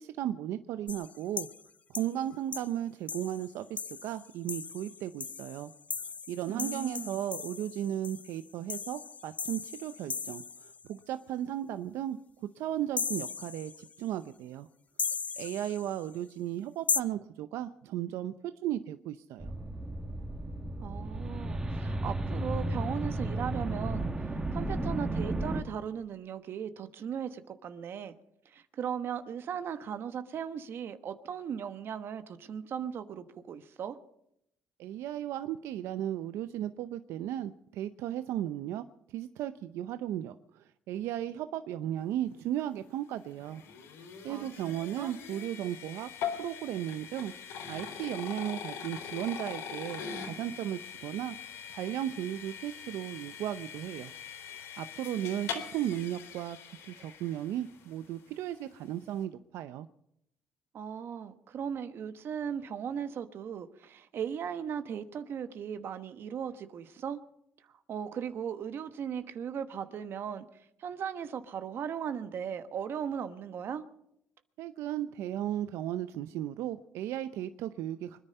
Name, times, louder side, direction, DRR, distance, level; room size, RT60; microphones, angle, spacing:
voice 1, 0.0-1.5 1.9-5.7 6.3-12.2 12.6-14.7 15.4-19.5 34.8-38.8 39.1-43.6 44.2-46.1 46.4-47.3 47.7-51.4 51.7-54.1 54.5-59.9 74.6-78.2, right 12 dB, 80° right, 0.6 m, -35 dB
sound 1, 0.9-1.6 1.9-2.1 2.5-2.7 3.1-10.9 13.0-14.0 15.0-16.0 16.9-17.0, left 5 dB, 30° left, 0.6 m, -37 dB
voice 2, 6.5-7.2 20.8-28.1 28.4-34.0 44.3-45.2 60.7-67.2 67.9-73.8, right 8 dB, 55° right, 1.2 m, -37 dB
sound 2, 19.4-25.6, right 1 dB, 15° right, 2.0 m, -33 dB
sound 3, 42.7-57.9, left 7 dB, 80° left, 3.5 m, -42 dB
25.0 x 10.0 x 5.6 m
cardioid pair, 95°, 5 cm